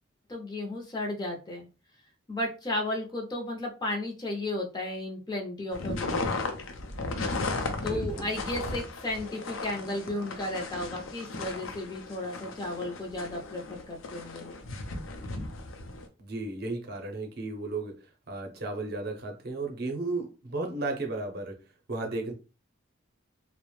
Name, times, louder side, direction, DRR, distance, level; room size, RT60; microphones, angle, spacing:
voice 1, 0.3-1.7 2.3-6.3 7.8-14.6, left 1 dB, 20° left, 0.5 m, -34 dB
sound 1, 5.7-16.1, left 3 dB, 85° left, 0.5 m, -35 dB
voice 2, 7.8-8.3 16.2-18.0 18.3-21.6 21.9-22.3, right 2 dB, 50° right, 0.6 m, -34 dB
2.4 x 2.0 x 3.0 m
head